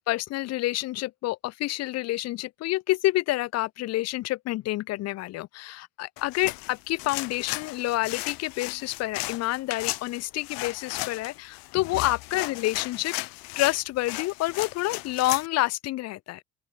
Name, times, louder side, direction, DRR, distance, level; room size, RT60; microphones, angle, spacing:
voice 1, 0.0-13.2 13.6-16.4, left 17 dB, 50° left, 0.4 m, -28 dB
sound 1, 6.2-15.5, left 27 dB, 80° left, 1.0 m, -36 dB
open air
supercardioid pair, 85°, 35 cm